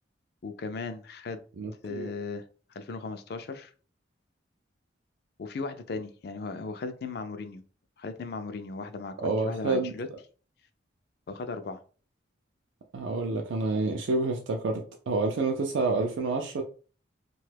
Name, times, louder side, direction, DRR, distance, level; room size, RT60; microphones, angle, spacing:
voice 1, 0.4-1.4 1.8-2.4 2.7-3.7 5.4-7.6 8.0-10.1 11.3-11.8, left 4 dB, 55° left, 0.3 m, -37 dB
voice 2, 1.6-2.1 9.2-9.9 12.9-16.6, right 3 dB, 80° right, 0.4 m, -28 dB
2.8 x 2.3 x 3.3 m
head